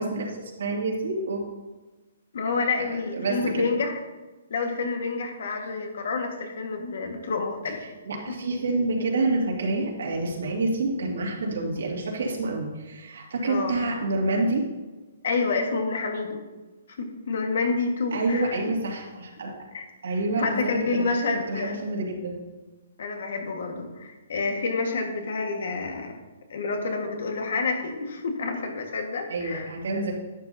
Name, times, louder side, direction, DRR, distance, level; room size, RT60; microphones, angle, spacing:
voice 1, 0.0-1.4 2.8-2.9 3.1-3.6 8.0-14.7 18.1-19.5 20.0-21.0 21.5-22.4 29.3-30.1, right 2 dB, 75° right, -1 dB, 2.4 m, -28 dB
voice 2, 2.3-3.9 4.5-7.8 13.4-13.8 15.2-16.4 17.0-18.6 19.7-19.8 20.4-21.8 23.0-26.2 26.5-29.7, left 4 dB, 60° left, 4 dB, 1.6 m, -28 dB
11.0 x 8.5 x 2.8 m, 1.2 s
hypercardioid pair, 175°, 0 cm